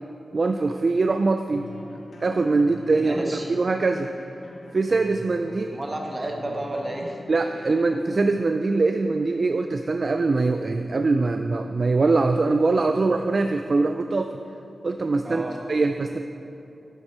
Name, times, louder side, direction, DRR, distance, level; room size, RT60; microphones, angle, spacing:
voice 1, 0.3-1.7 2.2-4.1 4.7-5.7 7.3-14.4 14.8-15.4 15.7-16.2, right 3 dB, 50° right, 6 dB, 0.3 m, -22 dB
sound 1, 1.5-8.1, left 2 dB, 70° left, 0.6 m, -44 dB
voice 2, 3.0-3.5 5.5-7.2 7.5-7.6 15.2-15.5, right 1 dB, 35° right, 1 dB, 1.1 m, -32 dB
8.2 x 7.8 x 4.3 m, 2.7 s
wide cardioid pair, 80°, 0 cm